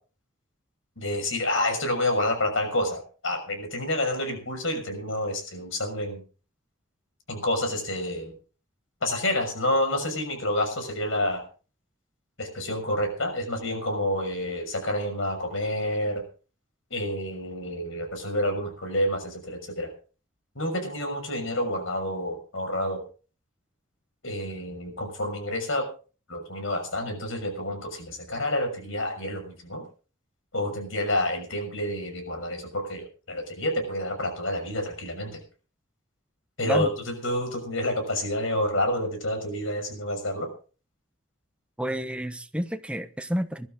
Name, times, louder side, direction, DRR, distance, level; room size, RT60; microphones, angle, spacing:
voice 1, 1.0-6.2 7.3-8.3 9.0-11.4 12.4-16.2 16.9-19.9 20.5-23.0 24.2-25.9 26.3-29.8 30.5-35.4 36.6-40.5, left 1 dB, 75° left, 6.3 m, -29 dB
voice 2, 41.8-43.7, equal, 5° right, 1.0 m, -30 dB
21.0 x 12.5 x 3.9 m
head